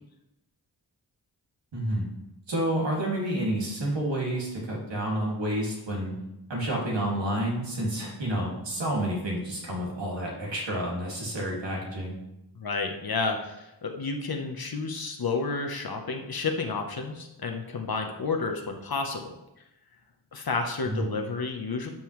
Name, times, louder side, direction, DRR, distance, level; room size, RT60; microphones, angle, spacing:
voice 1, 1.7-2.1 2.5-6.1 6.5-12.1 20.8-21.1, right 1 dB, 85° right, -3 dB, 2.4 m, -29 dB
voice 2, 12.5-19.3 20.3-21.9, left 4 dB, 55° left, 3 dB, 0.9 m, -31 dB
12.0 x 5.5 x 3.2 m, 0.90 s
wide cardioid pair, 80°, 43 cm